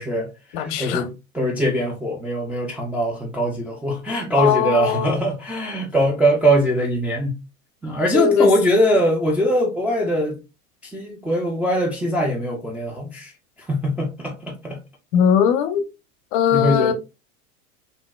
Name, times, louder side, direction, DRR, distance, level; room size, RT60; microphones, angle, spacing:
voice 1, 0.0-7.4 7.8-10.4 10.8-13.3 13.7-14.8 16.5-16.9, equal, 5° right, 0.3 m, -22 dB
voice 2, 0.5-1.0 4.4-5.2 8.1-8.5 15.1-15.8 16.3-16.9, left 8 dB, 50° left, 0.6 m, -19 dB
3.6 x 2.6 x 2.2 m
hypercardioid pair, 90°, 43 cm